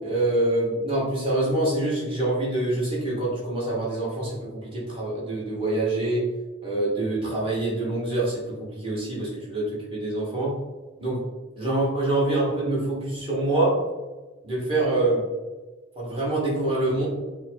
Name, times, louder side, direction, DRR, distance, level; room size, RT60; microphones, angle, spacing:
voice 1, 0.0-6.2 6.6-10.6 11.0-11.2 11.6-13.8 14.4-15.3 15.9-17.1, right 2 dB, 25° right, -6 dB, 1.5 m, -25 dB
5.8 x 2.1 x 3.6 m, 1.2 s
head